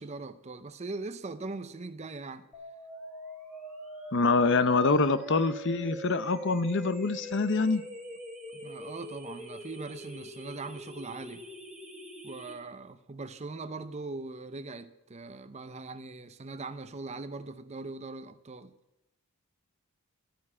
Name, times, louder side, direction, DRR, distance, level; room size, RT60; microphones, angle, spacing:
voice 1, 0.0-2.5 8.5-11.5 12.2-18.7, right 3 dB, 30° right, 0.6 m, -40 dB
sound 1, 2.5-12.5, right 1 dB, 5° right, 2.6 m, -43 dB
voice 2, 4.1-7.8, left 3 dB, 55° left, 0.8 m, -25 dB
12.5 x 9.3 x 8.5 m
head